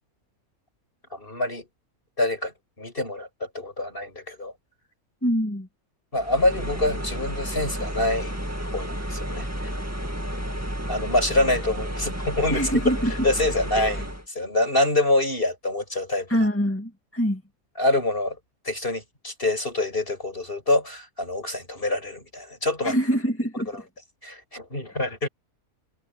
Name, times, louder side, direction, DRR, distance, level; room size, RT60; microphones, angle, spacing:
voice 1, 1.1-1.7 2.2-2.5 2.8-4.5 6.1-8.3 8.7-9.7 10.9-12.7 13.2-16.4 17.8-18.4 18.6-22.9 23.7-23.8 24.2-25.3, left 2 dB, 40° left, 7.9 m, -26 dB
voice 2, 5.2-5.7 12.5-13.1 13.8-13.9 16.3-17.4 22.8-23.8, equal, 10° left, 2.0 m, -24 dB
sound 1, 6.2-14.3, equal, 10° right, 2.3 m, -31 dB
omnidirectional pair, 1.5 m